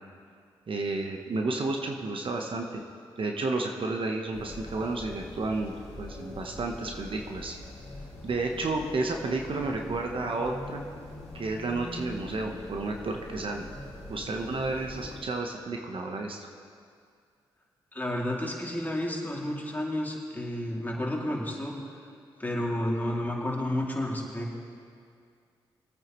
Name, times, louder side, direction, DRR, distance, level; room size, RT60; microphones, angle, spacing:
voice 1, 0.7-2.8 3.2-7.5 8.2-10.8 11.3-13.7 14.1-16.5, right 3 dB, 55° right, 2 dB, 1.1 m, -31 dB
sound 1, 4.3-15.2, left 1 dB, 75° left, 2.2 m, -43 dB
voice 2, 17.9-21.7 22.4-24.6, left 1 dB, 15° left, -2 dB, 2.6 m, -31 dB
21.5 x 9.1 x 3.1 m, 2.2 s
supercardioid pair, 45°, 11 cm